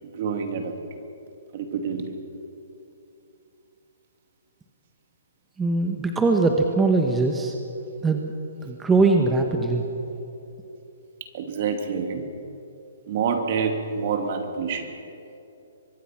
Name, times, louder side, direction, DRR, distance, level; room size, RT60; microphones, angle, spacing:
voice 1, 0.0-1.0 1.5-2.2 11.3-12.2 13.1-15.0, right 6 dB, 45° right, 5 dB, 2.6 m, -27 dB
voice 2, 5.6-7.5 8.0-8.3 8.6-9.8, right 3 dB, 10° right, 3 dB, 1.3 m, -21 dB
24.0 x 21.5 x 6.0 m, 2.9 s
hypercardioid pair, 155°, 0 cm